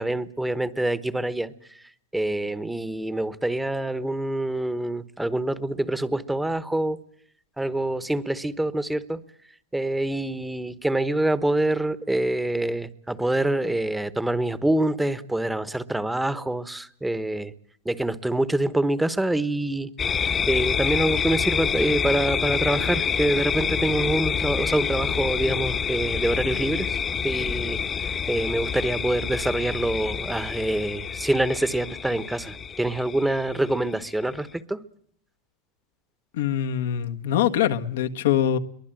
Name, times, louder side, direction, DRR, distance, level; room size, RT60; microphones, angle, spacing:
voice 1, 0.0-1.8 2.1-7.0 7.6-9.2 9.7-17.5 17.8-27.0 27.2-34.8, right 1 dB, 5° right, 15 dB, 1.1 m, -26 dB
sound 1, 20.0-34.3, left 7 dB, 20° left, 1.0 m, -27 dB
voice 2, 36.3-38.6, left 10 dB, 85° left, 7 dB, 1.6 m, -23 dB
23.5 x 19.5 x 9.0 m, 0.66 s
supercardioid pair, 140°, 0 cm